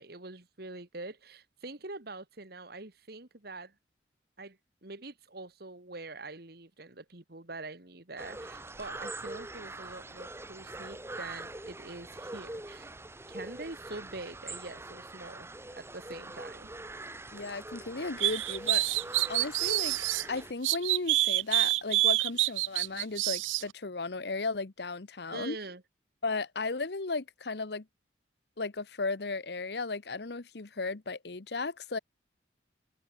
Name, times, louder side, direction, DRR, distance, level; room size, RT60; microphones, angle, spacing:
voice 1, 0.0-3.7 4.4-12.9 13.3-15.5 15.8-16.7 25.3-25.8, right 2 dB, 55° right, 2.2 m, -44 dB
sound 1, 8.2-20.5, right 2 dB, 15° right, 1.4 m, -43 dB
voice 2, 17.3-19.0 19.3-25.6 26.2-27.9 28.6-32.0, left 3 dB, 60° left, 1.0 m, -35 dB
sound 2, 18.2-20.2 20.6-23.6, right 19 dB, 90° right, 0.3 m, -27 dB
head